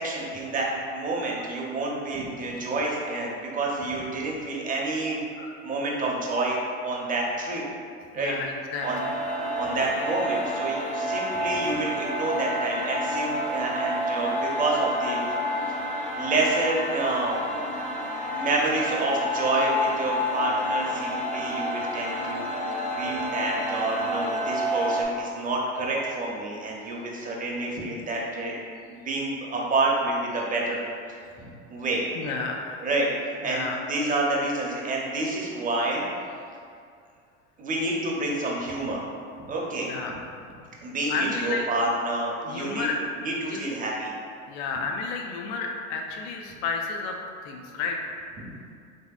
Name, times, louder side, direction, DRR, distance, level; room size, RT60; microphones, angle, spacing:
voice 1, 0.0-5.2 5.6-7.6 8.1-8.3 8.8-9.0 9.6-15.3 16.2-17.4 18.3-22.4 22.9-28.6 28.9-30.8 31.4-32.0 32.8-33.1 33.4-36.0 37.6-39.0 39.5-39.9 40.8-42.9 43.2-44.1, right 2 dB, 20° right, -3 dB, 0.6 m, -28 dB
voice 2, 8.1-9.1 14.1-14.4 21.8-22.2 32.1-32.9 33.4-33.8 39.8-40.2 41.1-41.7 42.4-42.9 43.4-43.6 44.5-47.2 47.4-48.1, left 4 dB, 70° left, 2 dB, 0.5 m, -32 dB
sound 1, 8.8-25.0, equal, 20° left, 0.5 m, -29 dB
3.2 x 2.7 x 2.3 m, 2.3 s
hypercardioid pair, 80°, 36 cm